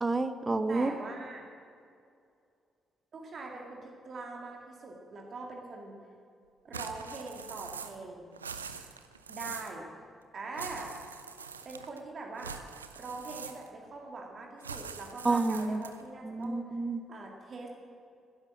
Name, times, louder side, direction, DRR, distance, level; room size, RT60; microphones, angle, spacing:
voice 1, 0.0-0.9 15.2-15.8 16.2-17.0, right 3 dB, 25° right, 11 dB, 0.9 m, -29 dB
voice 2, 0.7-1.5 3.1-6.0 6.6-8.4 9.3-9.9 10.3-10.9 11.6-12.5 12.9-16.6 17.1-17.7, right 3 dB, 45° right, 0 dB, 2.0 m, -43 dB
sound 1, 6.7-8.1 8.3-9.8 10.5-12.0 12.4-13.9 14.6-16.1, right 6 dB, 85° right, 0.4 m, -43 dB
12.0 x 10.5 x 7.5 m, 2.4 s
figure-of-eight pair, 40°, 0 cm